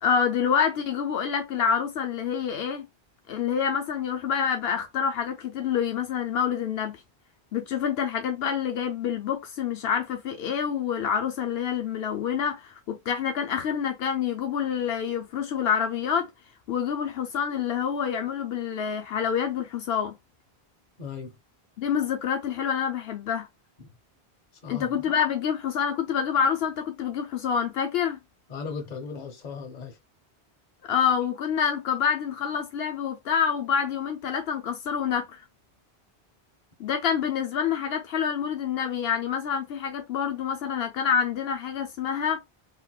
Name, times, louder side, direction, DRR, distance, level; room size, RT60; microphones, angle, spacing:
voice 1, 0.0-2.9 3.3-7.0 7.5-16.3 16.7-20.1 21.8-23.5 24.7-28.2 30.9-35.4 36.8-42.4, left 7 dB, 75° left, 0.8 m, -27 dB
voice 2, 21.0-21.3 23.8-23.9 24.6-24.9 28.5-30.0, left 5 dB, 45° left, 0.9 m, -37 dB
3.1 x 2.8 x 2.3 m
omnidirectional pair, 1.0 m